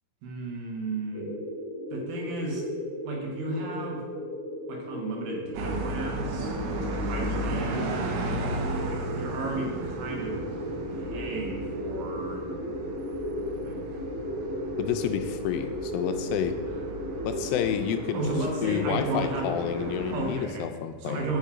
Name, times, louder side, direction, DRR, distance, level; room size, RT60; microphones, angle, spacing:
voice 1, 0.2-1.3 1.9-2.7 3.0-4.1 4.7-6.5 6.8-7.9 8.9-10.4 10.9-12.6 13.6-13.8 18.1-19.5 20.1-20.7 21.0-21.4, right 2 dB, 75° right, 1 dB, 3.0 m, -34 dB
sound 1, 1.1-20.1, equal, 60° left, 1.0 m, -35 dB
sound 2, 5.5-20.3, right 2 dB, 90° right, 2.8 m, -35 dB
voice 2, 14.8-16.6 17.3-18.2 18.6-21.3, left 9 dB, 80° left, 7 dB, 2.2 m, -30 dB
7.5 x 5.4 x 4.9 m, 1.3 s
omnidirectional pair, 4.3 m